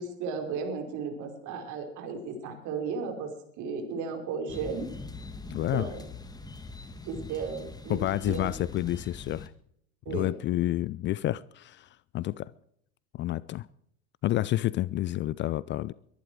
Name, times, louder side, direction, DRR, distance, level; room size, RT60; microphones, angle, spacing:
voice 1, 0.0-4.9 5.7-6.0 7.0-8.0 8.3-8.5 10.1-10.4, right 5 dB, 50° right, 5.3 m, -35 dB
sound 1, 4.5-9.5, left 3 dB, 10° left, 1.9 m, -42 dB
voice 2, 5.5-5.9 7.9-9.5 10.1-11.9 12.1-12.5 13.1-13.7 14.2-15.9, left 14 dB, 30° left, 0.5 m, -29 dB
23.0 x 11.0 x 4.8 m
hypercardioid pair, 90°, 39 cm